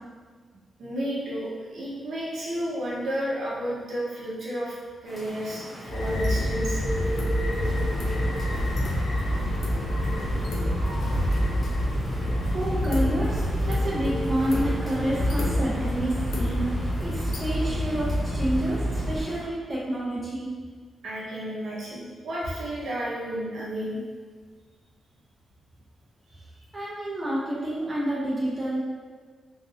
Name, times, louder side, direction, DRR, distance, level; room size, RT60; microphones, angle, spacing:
voice 1, 0.8-6.8 21.0-24.0 26.3-26.4, equal, 65° right, -7 dB, 0.8 m, -32 dB
Rain, 5.0-19.4, equal, 10° left, 1.0 m, -42 dB
sound 1, 5.9-19.2, equal, 60° left, 0.5 m, -26 dB
voice 2, 12.3-20.6 26.7-28.8, right 1 dB, 20° right, -7 dB, 0.7 m, -29 dB
3.1 x 2.6 x 2.7 m, 1.5 s
wide cardioid pair, 135°, 0 cm